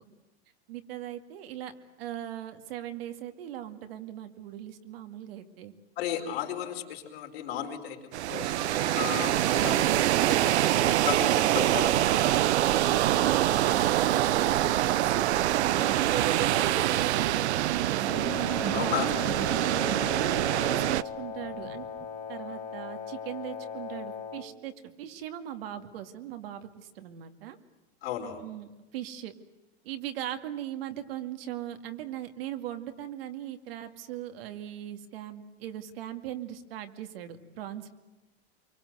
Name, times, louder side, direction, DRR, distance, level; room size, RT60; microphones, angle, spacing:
voice 1, 0.7-1.7 2.0-5.7 9.5-18.3 18.8-19.1 19.5-21.9 22.3-24.7 25.0-27.6 28.4-29.3 29.8-37.9, right 11 dB, 60° right, 7 dB, 2.3 m, -39 dB
voice 2, 6.0-8.5 8.9-10.1 10.8-11.3 11.5-11.9 18.7-19.1 28.0-28.4, left 10 dB, 60° left, 4 dB, 4.5 m, -34 dB
sound 1, 8.1-21.0, right 14 dB, 80° right, 0.8 m, -25 dB
sound 2, 8.4-22.0, right 7 dB, 30° right, 2.0 m, -37 dB
Wind instrument woodwind instrument, 18.1-24.5, left 7 dB, 20° left, 1.5 m, -38 dB
25.5 x 24.0 x 8.0 m, 1.1 s
supercardioid pair, 165°, 33 cm